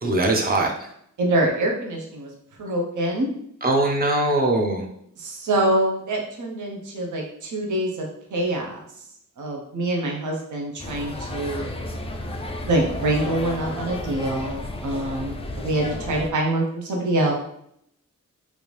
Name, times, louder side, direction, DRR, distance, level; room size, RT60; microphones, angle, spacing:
voice 1, 0.0-0.9 3.6-4.8, right 2 dB, 30° right, 1 dB, 0.6 m, -21 dB
voice 2, 1.2-2.3 2.6-3.3 5.2-8.8 9.4-11.7 12.6-17.3, right 1 dB, 65° right, -1 dB, 0.8 m, -25 dB
sound 1, 10.8-16.3, left 1 dB, 20° left, 0.3 m, -32 dB
3.4 x 2.6 x 3.1 m, 0.71 s
wide cardioid pair, 125°, 32 cm